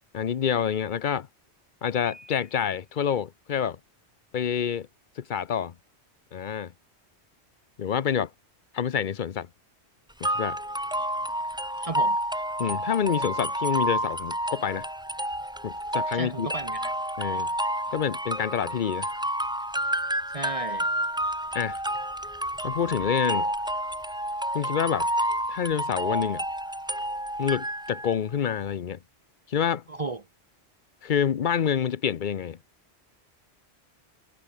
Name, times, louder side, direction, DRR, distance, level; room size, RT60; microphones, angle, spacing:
voice 1, 0.1-1.3 1.8-3.8 4.3-4.9 5.2-5.7 6.3-6.7 7.8-8.3 8.7-9.5 10.2-10.6 12.6-14.9 15.6-16.5 17.2-17.5 17.9-19.1 21.5-21.8 22.6-23.5 24.5-25.1 25.5-26.4 27.4-29.0 29.5-29.8 31.0-32.6, left 8 dB, 50° left, 0.8 m, -27 dB
Piano, 2.1-3.0, left 1 dB, 90° left, 6.8 m, -51 dB
sound 1, 10.2-28.2, right 1 dB, 5° right, 1.0 m, -30 dB
voice 2, 11.8-12.2 16.1-16.9 20.3-20.9 29.9-30.2, right 3 dB, 35° right, 0.9 m, -34 dB
omnidirectional pair, 1.1 m